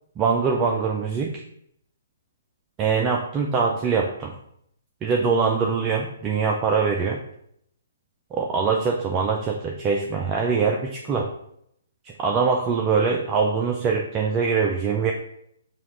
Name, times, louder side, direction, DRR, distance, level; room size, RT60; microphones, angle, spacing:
voice 1, 0.2-1.3 2.8-4.3 5.0-7.2 8.3-11.3 12.2-15.1, right 5 dB, 25° right, 0 dB, 0.4 m, -23 dB
5.5 x 2.4 x 3.0 m, 0.72 s
figure-of-eight pair, 130°, 0 cm